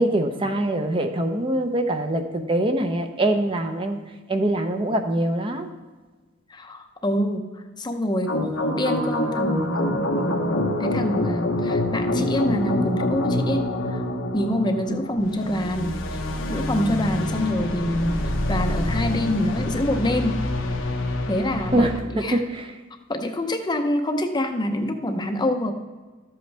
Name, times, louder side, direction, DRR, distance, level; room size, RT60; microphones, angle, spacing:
voice 1, 0.0-4.0 4.3-5.7 21.7-22.7, right 1 dB, 25° right, 5 dB, 0.7 m, -23 dB
voice 2, 6.5-14.1 14.3-16.2 16.5-20.4 21.3-21.9 22.2-22.4 23.1-25.7, left 1 dB, 20° left, 6 dB, 0.7 m, -26 dB
sound 1, 8.3-22.0, left 1 dB, 90° left, 1.1 m, -26 dB
12.5 x 7.8 x 3.4 m, 1.3 s
head